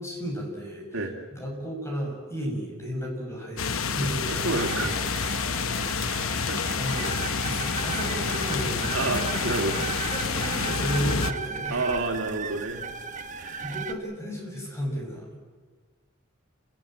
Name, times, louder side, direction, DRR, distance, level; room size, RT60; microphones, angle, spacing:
voice 1, 0.0-1.0 1.3-4.2 6.2-7.1 7.4-9.5 9.8-11.8 13.1-13.3 13.6-15.4, equal, 15° left, 0 dB, 6.2 m, -34 dB
sound 1, 3.6-11.3, left 5 dB, 85° left, 1.0 m, -28 dB
sound 2, 4.3-13.9, right 6 dB, 35° right, 1.2 m, -36 dB
voice 2, 4.3-5.4 6.0-6.6 8.9-9.7 11.7-12.9 13.3-13.7, right 2 dB, 80° right, 2 dB, 2.8 m, -30 dB
28.5 x 15.5 x 9.1 m, 1.5 s
head